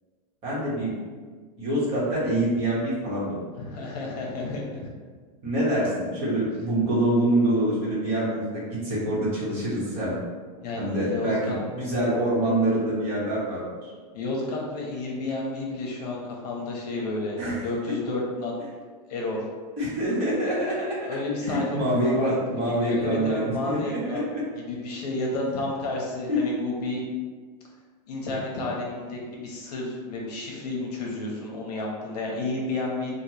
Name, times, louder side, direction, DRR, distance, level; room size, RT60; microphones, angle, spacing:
voice 1, 0.4-0.9 1.6-3.6 5.4-10.2 10.7-13.6 17.4-17.9 19.8-20.9 21.4-24.4 26.3-26.5, right 1 dB, 25° right, -8 dB, 1.0 m, -25 dB
voice 2, 3.6-4.8 10.6-11.6 14.1-18.5 19.1-19.5 21.1-22.3 22.6-24.3 24.5-27.0 28.1-33.2, left 2 dB, 70° left, -1 dB, 0.7 m, -31 dB
3.2 x 2.2 x 2.8 m, 1.5 s
supercardioid pair, 165°, 21 cm